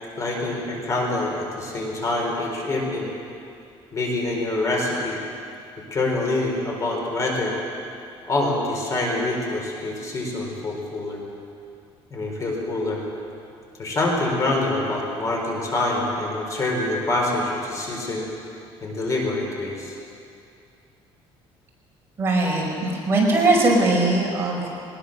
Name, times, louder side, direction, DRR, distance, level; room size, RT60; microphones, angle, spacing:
voice 1, 0.2-3.1 3.9-5.2 5.9-7.5 8.3-11.2 12.1-13.0 13.8-18.2 18.8-19.9, left 2 dB, 30° left, -1 dB, 4.4 m, -25 dB
voice 2, 22.2-24.7, right 2 dB, 25° right, -3 dB, 5.2 m, -20 dB
22.0 x 20.5 x 6.7 m, 2.5 s
cardioid pair, 155°, 11 cm